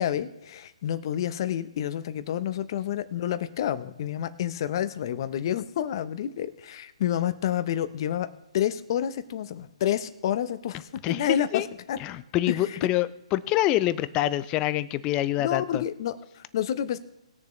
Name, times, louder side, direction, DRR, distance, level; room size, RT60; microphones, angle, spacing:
voice 1, 0.0-8.3 8.5-11.6 11.9-12.0 12.5-12.8 15.4-17.0, left 10 dB, 45° left, 12 dB, 0.9 m, -29 dB
voice 2, 11.0-11.7 12.0-15.8, left 15 dB, 20° left, 16 dB, 0.5 m, -26 dB
20.5 x 6.8 x 3.3 m, 0.91 s
hypercardioid pair, 145°, 3 cm